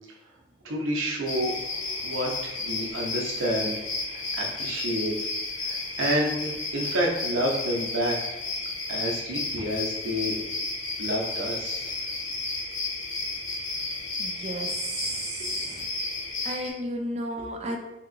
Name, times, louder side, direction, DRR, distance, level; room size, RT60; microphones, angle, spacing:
voice 1, 0.6-1.5 2.0-3.8 4.1-5.1 5.6-8.4 8.9-10.4 11.0-12.0, equal, 85° right, -2 dB, 0.7 m, -29 dB
sound 1, 1.3-16.7, left 3 dB, 85° left, 0.7 m, -32 dB
voice 2, 14.2-15.9 16.4-17.8, right 1 dB, 35° right, 3 dB, 0.4 m, -34 dB
3.5 x 2.9 x 2.6 m, 0.98 s
head